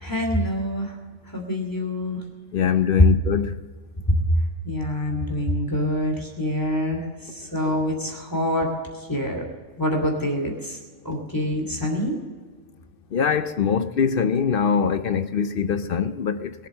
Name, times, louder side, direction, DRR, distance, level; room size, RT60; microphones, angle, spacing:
voice 1, 0.0-1.0 1.2-2.2 2.8-3.0 4.3-9.4 9.8-10.8 11.0-12.2, equal, 15° left, 2.8 m, -26 dB
voice 2, 2.5-3.6 13.1-16.7, left 7 dB, 55° left, 0.8 m, -23 dB
22.0 x 7.9 x 6.5 m
omnidirectional pair, 1.2 m